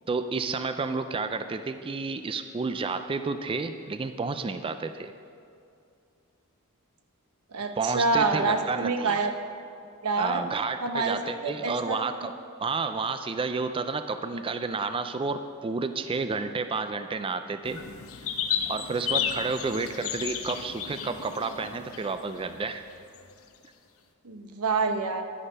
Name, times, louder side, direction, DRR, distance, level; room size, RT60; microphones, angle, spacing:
voice 1, 0.1-5.1 7.8-9.2 10.2-12.3 12.6-17.8 18.7-22.8, right 4 dB, 25° right, 9 dB, 0.4 m, -31 dB
voice 2, 7.5-9.3 10.0-10.5 10.8-12.1 24.2-25.2, right 3 dB, 85° right, 6 dB, 1.0 m, -27 dB
Farmyard Ambience, 17.6-23.2, left 8 dB, 70° left, 0.8 m, -33 dB
11.0 x 10.0 x 5.5 m, 2.4 s
head